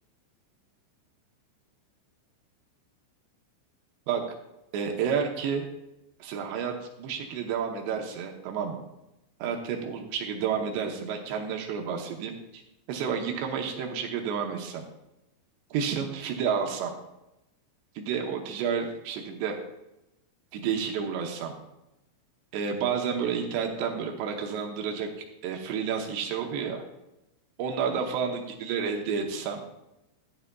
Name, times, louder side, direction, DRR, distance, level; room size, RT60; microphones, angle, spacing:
voice 1, 4.7-5.6 6.2-8.8 9.4-12.6 12.9-14.8 15.7-16.9 18.0-19.6 20.5-21.6 22.5-25.1 25.4-26.8 27.6-29.6, right 6 dB, 75° right, 2 dB, 2.6 m, -30 dB
13.0 x 11.0 x 2.2 m, 0.91 s
omnidirectional pair, 5.8 m